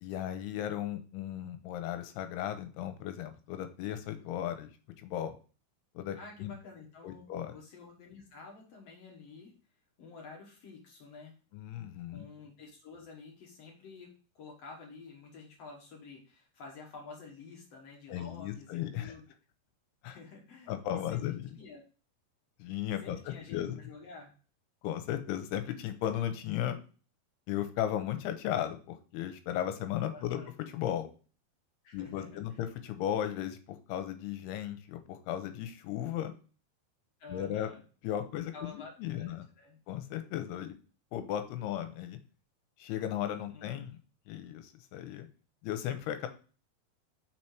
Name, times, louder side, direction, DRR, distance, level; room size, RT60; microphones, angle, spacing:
voice 1, 0.0-4.7 5.0-5.4 6.0-6.5 7.0-7.6 11.5-12.3 18.1-19.1 20.0-20.2 20.7-21.5 22.6-23.8 24.8-26.8 27.5-31.1 31.9-36.3 37.3-37.7 38.0-39.4 39.9-40.7 41.1-42.2 42.8-44.0 44.3-45.3 45.6-46.3, left 11 dB, 90° left, 8 dB, 2.7 m, -36 dB
voice 2, 6.1-9.5 10.0-11.4 12.1-19.2 20.0-21.8 23.0-24.3 30.1-30.5 31.8-32.6 37.2-37.8 38.5-39.8 43.5-43.8, left 4 dB, 65° left, -1 dB, 1.6 m, -50 dB
5.9 x 4.4 x 4.5 m, 0.38 s
omnidirectional pair, 4.7 m